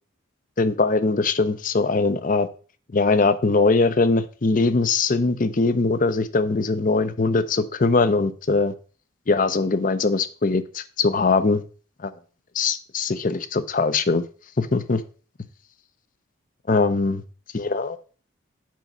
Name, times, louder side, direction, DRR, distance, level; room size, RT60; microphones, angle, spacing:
voice 1, 0.6-2.5 2.9-8.7 9.3-11.6 12.0-12.1 12.5-14.2 14.6-15.0 16.7-17.2 17.5-18.0, left 3 dB, 40° left, 13 dB, 0.6 m, -21 dB
7.5 x 5.4 x 5.4 m, 0.40 s
head